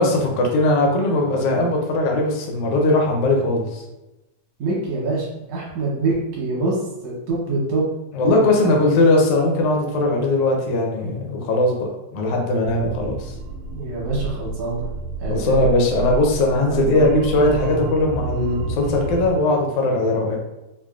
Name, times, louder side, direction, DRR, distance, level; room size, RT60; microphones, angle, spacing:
voice 1, 0.0-3.8 8.1-13.3 15.3-20.4, left 2 dB, 80° left, 0 dB, 1.4 m, -19 dB
voice 2, 4.6-6.8 7.0-7.9 8.3-8.7 13.7-14.8 15.2-15.7 16.7-17.1, right 2 dB, 65° right, -5 dB, 1.8 m, -25 dB
sound 1, 12.6-19.3, right 3 dB, 90° right, 1.4 m, -29 dB
5.0 x 2.4 x 2.4 m, 0.98 s
omnidirectional pair, 3.5 m